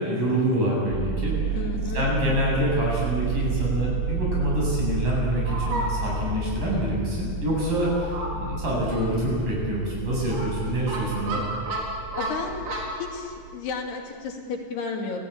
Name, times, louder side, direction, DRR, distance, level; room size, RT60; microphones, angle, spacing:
voice 1, 0.0-1.6 1.9-11.4, right 1 dB, 55° right, -3 dB, 9.6 m, -26 dB
sound 1, 0.9-13.5, right 4 dB, 30° right, 1.8 m, -31 dB
voice 2, 1.5-2.1 10.7-10.9 11.3-11.5 12.2-12.7 13.0-15.3, left 4 dB, 85° left, 1 dB, 4.8 m, -33 dB
Fowl, 4.0-13.0, right 1 dB, 75° right, 6.0 m, -35 dB
29.0 x 17.5 x 8.7 m, 2.2 s
omnidirectional pair, 4.5 m